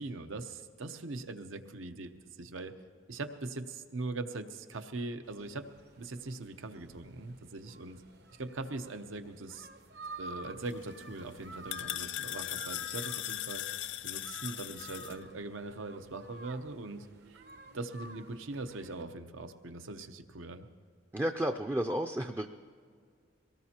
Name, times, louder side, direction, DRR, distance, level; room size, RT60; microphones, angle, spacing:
voice 1, 0.0-2.7 3.1-5.7 6.0-8.0 8.4-9.7 10.2-17.4 17.7-20.7, right 2 dB, 90° right, 8 dB, 0.8 m, -41 dB
sound 1, 5.2-19.0, right 2 dB, 55° right, 0.8 m, -51 dB
sound 2, 10.6-15.1, left 13 dB, 65° left, 0.5 m, -39 dB
voice 2, 21.1-22.5, right 1 dB, 10° right, 4 dB, 0.3 m, -32 dB
23.0 x 18.0 x 2.9 m, 2.1 s
head